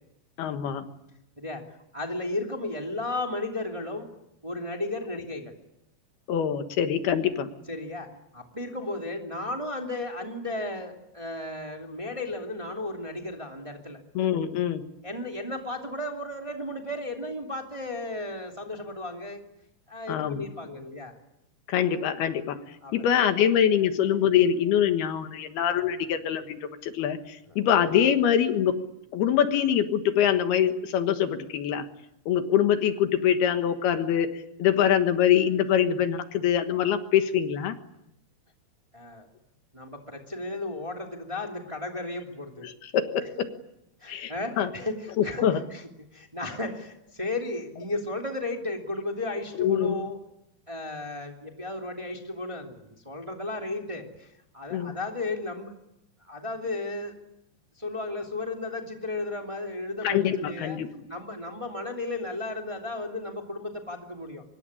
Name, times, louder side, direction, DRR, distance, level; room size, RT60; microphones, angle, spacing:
voice 1, 0.4-0.9 6.3-7.5 14.2-14.9 20.1-20.4 21.7-22.6 22.9-28.9 29.1-31.9 32.3-37.8 42.6-43.5 44.1-44.7 45.2-45.6 49.6-50.0 54.7-55.0 60.0-60.9, left 9 dB, 80° left, 8 dB, 3.5 m, -24 dB
voice 2, 1.9-4.1 4.4-5.5 7.7-14.0 15.0-19.4 19.9-21.1 22.8-23.0 27.5-27.6 38.9-39.3 39.7-42.7 44.0-45.8 46.1-50.2 50.7-55.7 56.2-57.1 57.8-60.8 61.1-64.4, left 2 dB, 10° right, 2 dB, 2.3 m, -34 dB
25.0 x 22.0 x 9.8 m, 0.84 s
omnidirectional pair, 4.5 m